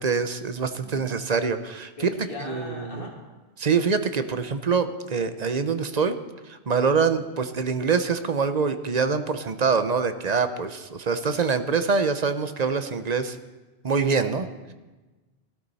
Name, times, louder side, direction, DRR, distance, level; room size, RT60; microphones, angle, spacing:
voice 1, 0.0-2.1 2.5-3.1 3.6-6.1 6.5-13.4 13.8-14.5, right 5 dB, 45° right, 10 dB, 0.8 m, -25 dB
voice 2, 0.6-1.0 2.0-3.2 6.8-7.1 14.3-14.5, left 2 dB, 55° left, 0 dB, 2.3 m, -40 dB
16.5 x 13.0 x 4.1 m, 1.2 s
omnidirectional pair, 1.1 m